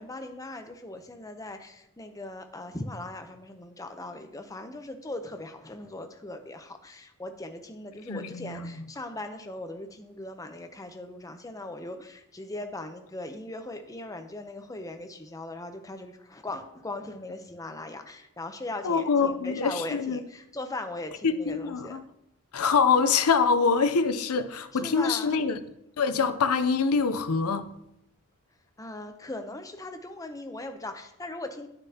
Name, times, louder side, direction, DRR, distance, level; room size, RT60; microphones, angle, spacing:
voice 1, 0.0-22.0 24.5-25.4 28.8-31.7, left 2 dB, 15° left, 0.6 m, -39 dB
voice 2, 8.1-8.8 18.8-20.2 21.2-22.0 22.5-25.6 26.0-27.6, left 5 dB, 80° left, 0.6 m, -25 dB
9.6 x 6.7 x 2.8 m
head